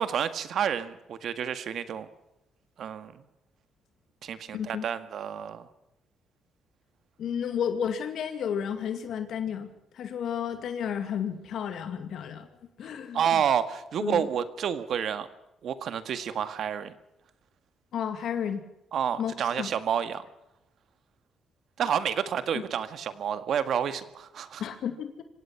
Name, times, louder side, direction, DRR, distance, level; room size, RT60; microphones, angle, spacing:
voice 1, 0.0-2.1 2.8-3.2 4.2-5.7 13.1-15.3 15.6-16.9 18.9-20.3 21.8-24.6, right 8 dB, 65° right, 11 dB, 1.8 m, -29 dB
voice 2, 4.5-4.8 7.2-12.5 12.8-13.4 14.0-14.3 17.9-18.6 19.2-19.7 22.5-22.6 24.6-25.2, left 8 dB, 70° left, 8 dB, 2.3 m, -32 dB
25.5 x 17.5 x 5.9 m, 0.89 s
cardioid pair, 90°, 0 cm